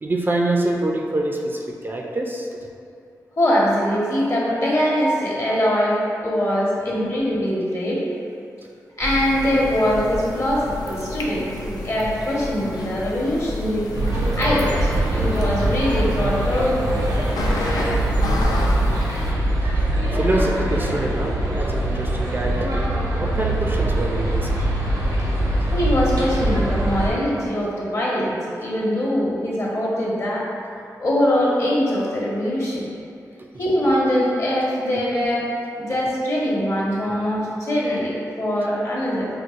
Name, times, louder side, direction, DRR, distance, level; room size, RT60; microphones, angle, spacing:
voice 1, 0.0-2.5 20.1-24.5, right 1 dB, 30° right, 0 dB, 0.4 m, -25 dB
voice 2, 3.4-8.0 9.0-13.9 14.4-17.0 25.7-30.5 31.0-32.9 33.6-35.5 35.8-39.3, equal, 50° left, -5 dB, 1.0 m, -22 dB
sound 1, 9.0-19.3, left 2 dB, 80° left, 0.4 m, -30 dB
sound 2, 13.9-27.1, right 1 dB, 75° right, 0.7 m, -22 dB
4.5 x 2.2 x 2.4 m, 2.5 s
cardioid pair, 45°, 7 cm